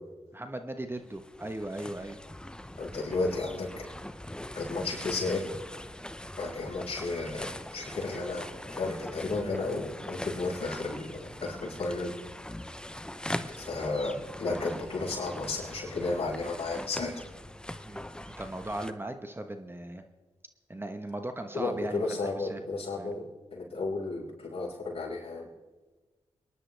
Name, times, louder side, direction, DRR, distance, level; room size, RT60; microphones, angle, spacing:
voice 1, 0.3-2.2 17.8-18.0 18.3-20.0 20.7-22.6 23.0-23.1, right 1 dB, 20° right, 7 dB, 1.2 m, -38 dB
sound 1, 0.9-18.9, left 1 dB, 5° left, 0.8 m, -42 dB
voice 2, 2.8-3.8 4.5-5.4 6.4-7.5 7.7-12.1 13.6-17.1 21.5-25.5, left 3 dB, 60° left, -3 dB, 5.5 m, -33 dB
24.5 x 11.0 x 3.4 m, 1.2 s
cardioid pair, 50°, 11 cm